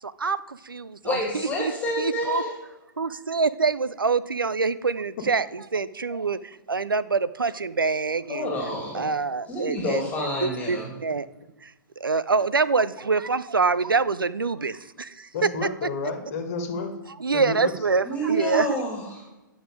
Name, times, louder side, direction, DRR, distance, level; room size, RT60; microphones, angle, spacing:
voice 1, 0.0-1.7 2.0-2.4 3.0-8.5 8.9-11.3 11.6-15.3 15.6-15.7 17.2-18.8, right 4 dB, 80° right, 16 dB, 0.5 m, -26 dB
voice 2, 1.0-2.5 8.3-9.1 9.5-10.9 18.0-19.3, equal, 15° left, -1 dB, 2.2 m, -28 dB
voice 3, 15.3-17.0 17.3-17.7, left 3 dB, 40° left, 5 dB, 1.6 m, -31 dB
10.0 x 6.2 x 5.0 m, 1.0 s
figure-of-eight pair, 115°, 11 cm